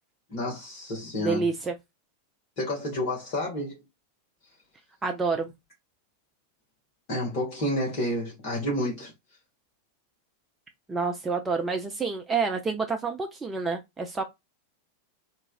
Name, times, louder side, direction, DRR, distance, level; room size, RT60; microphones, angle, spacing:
voice 1, 0.3-1.5 2.6-3.8 7.1-9.1, left 1 dB, 40° left, 1.3 m, -30 dB
voice 2, 1.2-1.7 5.0-5.5 10.9-14.2, right 4 dB, 15° right, 0.4 m, -28 dB
3.0 x 2.3 x 2.3 m
figure-of-eight pair, 90°, 0 cm